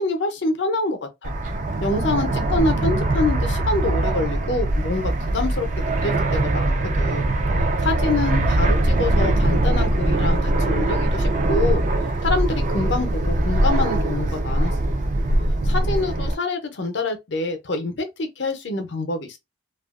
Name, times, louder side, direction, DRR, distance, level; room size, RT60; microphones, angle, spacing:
voice 1, 0.0-1.3 1.8-7.3 7.8-11.8 12.2-15.0 15.6-19.4, left 2 dB, 65° left, 0.6 m, -26 dB
Fixed-wing aircraft airplane, 1.2-16.4, right 1 dB, 40° right, 0.3 m, -21 dB
2.6 x 2.4 x 2.4 m
head